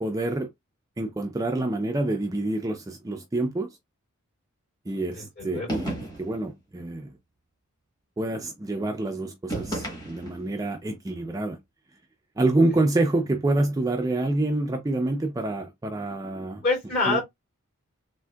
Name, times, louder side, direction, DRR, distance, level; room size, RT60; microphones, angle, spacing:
voice 1, 0.0-0.5 1.0-3.7 4.9-7.1 8.2-11.6 12.4-16.6 17.1-17.2, right 2 dB, 15° right, 0.3 m, -27 dB
voice 2, 5.1-5.8 16.6-17.2, left 3 dB, 45° left, 2.3 m, -26 dB
sound 1, 5.7-6.4 9.5-10.5, right 1 dB, 20° left, 1.2 m, -33 dB
3.5 x 2.5 x 2.2 m
head